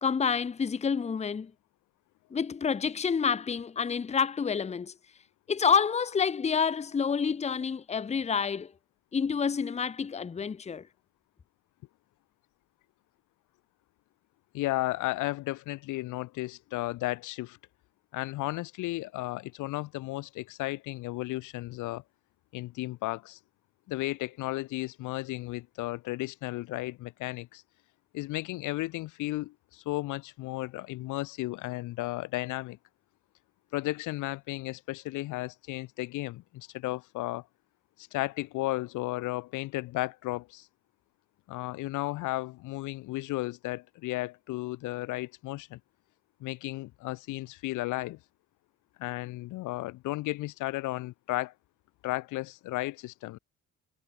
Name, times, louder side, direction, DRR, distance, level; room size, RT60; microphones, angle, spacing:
voice 1, 0.0-1.5 2.3-4.9 5.5-8.7 9.1-10.9, left 6 dB, 20° left, 0.6 m, -28 dB
voice 2, 14.5-17.6 18.1-22.0 22.5-23.4 23.9-27.6 28.1-32.8 33.7-37.4 38.0-40.7 41.5-45.8 46.4-48.2 49.0-51.5 52.0-53.4, left 18 dB, 90° left, 0.7 m, -34 dB
cardioid pair, 90°, 30 cm